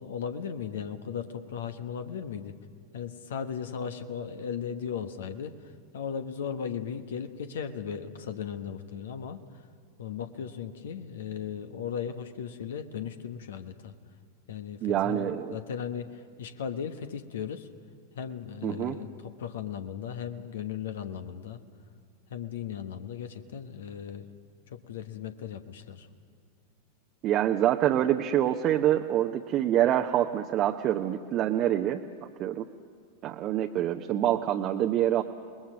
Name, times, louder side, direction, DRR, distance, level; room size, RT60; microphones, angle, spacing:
voice 1, 0.0-2.6 2.9-5.5 5.9-9.4 10.0-13.9 14.5-17.7 18.2-21.6 22.3-24.3 24.7-26.1, left 7 dB, 60° left, 9 dB, 1.2 m, -37 dB
voice 2, 14.8-15.6 18.6-19.0 27.2-32.0 32.4-32.7 33.2-35.2, right 11 dB, 35° right, 4 dB, 0.8 m, -26 dB
28.5 x 21.0 x 6.4 m, 2.3 s
figure-of-eight pair, 90°, 0 cm